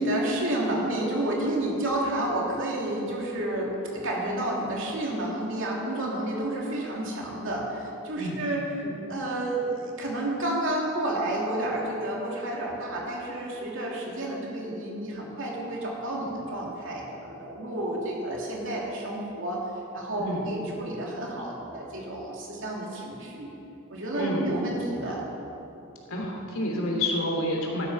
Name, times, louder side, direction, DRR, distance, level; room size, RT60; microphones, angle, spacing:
voice 1, 0.0-8.6 9.1-19.6 19.9-23.5 23.9-25.2, right 1 dB, 60° right, -3 dB, 3.0 m, -30 dB
voice 2, 8.2-8.5 8.8-8.9 20.2-20.5 24.1-24.7 26.1-27.9, left 1 dB, 75° left, -1 dB, 3.0 m, -29 dB
15.0 x 12.0 x 5.6 m, 2.9 s
head